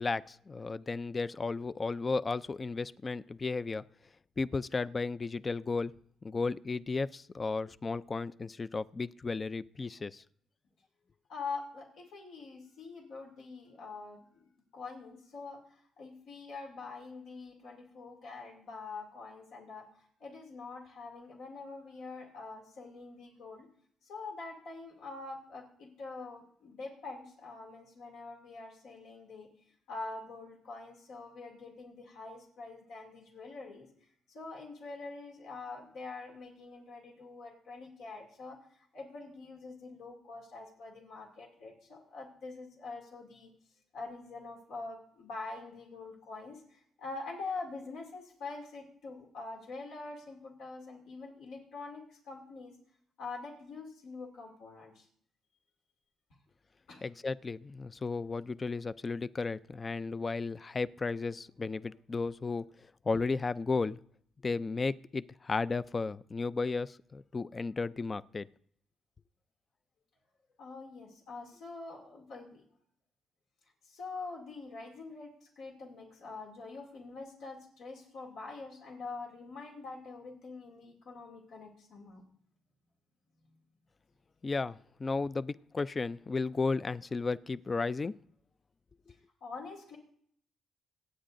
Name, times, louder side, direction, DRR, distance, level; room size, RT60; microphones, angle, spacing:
voice 1, 0.0-3.8 4.4-5.9 6.2-10.2 57.0-62.7 63.0-64.0 64.4-68.5 84.4-88.1, left 4 dB, 30° left, 17 dB, 0.3 m, -34 dB
voice 2, 11.3-19.9 20.2-23.7 24.0-29.5 29.9-33.9 34.3-43.5 43.9-52.7 53.2-55.1 56.9-57.0 70.6-72.6 73.8-82.2 83.5-83.6 89.1-90.0, left 3 dB, 80° left, 0 dB, 2.5 m, -45 dB
26.0 x 8.9 x 2.6 m, 0.65 s
cardioid pair, 90°, 0 cm